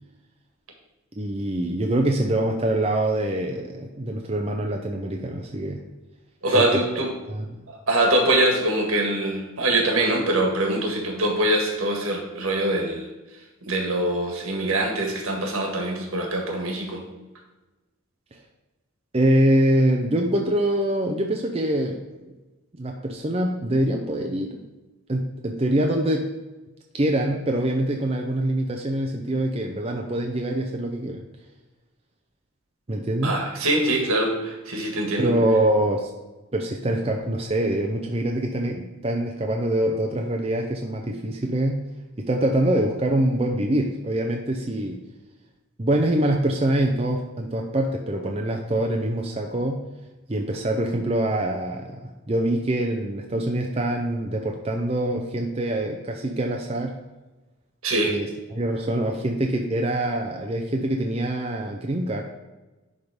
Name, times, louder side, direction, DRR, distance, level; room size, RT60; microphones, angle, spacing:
voice 1, 1.1-5.8 6.5-6.8 7.3-7.5 19.1-22.0 22.8-24.6 25.1-26.3 26.9-31.2 32.9-33.4 35.2-36.1 36.5-41.9 42.2-45.0 45.8-49.8 50.3-57.0 58.1-62.3, right 1 dB, 25° right, 2 dB, 0.6 m, -24 dB
voice 2, 6.4-7.1 7.7-13.1 13.6-17.0 33.2-35.3 57.8-58.1, right 1 dB, 75° right, 1 dB, 1.9 m, -23 dB
10.5 x 3.7 x 5.1 m, 1.1 s
head